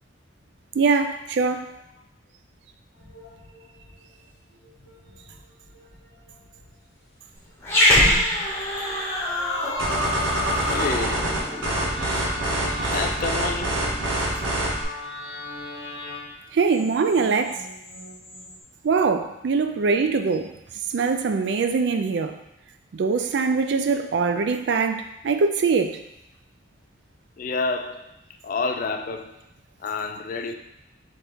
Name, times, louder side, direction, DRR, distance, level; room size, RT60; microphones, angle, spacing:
voice 1, 0.7-1.7 16.5-17.7 18.8-20.5 20.9-22.4 22.9-26.0, right 4 dB, 60° right, 0.3 m, -22 dB
sound 1, 2.9-18.6, left 2 dB, 75° left, 0.8 m, -40 dB
Growling, 7.6-12.3, left 1 dB, 15° left, 0.9 m, -24 dB
sound 2, 9.8-14.8, right 1 dB, 85° right, 1.0 m, -26 dB
voice 2, 10.7-11.4 12.9-13.9 27.4-28.2 28.4-29.4 29.8-30.5, left 4 dB, 45° left, 0.3 m, -29 dB
4.2 x 3.5 x 3.5 m
head